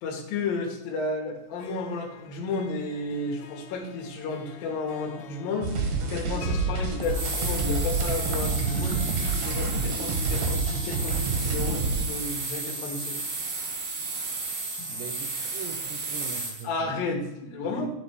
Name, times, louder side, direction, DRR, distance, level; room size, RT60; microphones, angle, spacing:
voice 1, 0.0-5.7 6.1-13.1 16.6-17.9, left 3 dB, 60° left, 0 dB, 2.7 m, -32 dB
Harp, 1.4-15.4, left 5 dB, 90° left, 3.2 m, -47 dB
sound 1, 5.6-12.1, right 3 dB, 70° right, 2.0 m, -28 dB
sound 2, 7.0-16.6, right 3 dB, 55° right, 2.0 m, -33 dB
voice 2, 14.2-14.6 14.9-16.9 17.6-17.9, right 7 dB, 85° right, 4 dB, 2.6 m, -42 dB
11.5 x 5.2 x 4.6 m, 0.92 s
omnidirectional pair, 5.7 m